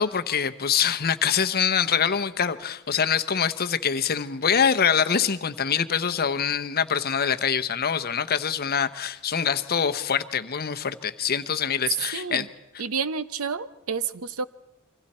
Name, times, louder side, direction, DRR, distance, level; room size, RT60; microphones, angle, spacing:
voice 1, 0.0-12.5, left 7 dB, 45° left, 10 dB, 0.9 m, -24 dB
voice 2, 12.1-12.5 12.8-14.5, right 5 dB, 70° right, 14 dB, 0.8 m, -30 dB
28.0 x 25.0 x 4.3 m, 0.93 s
head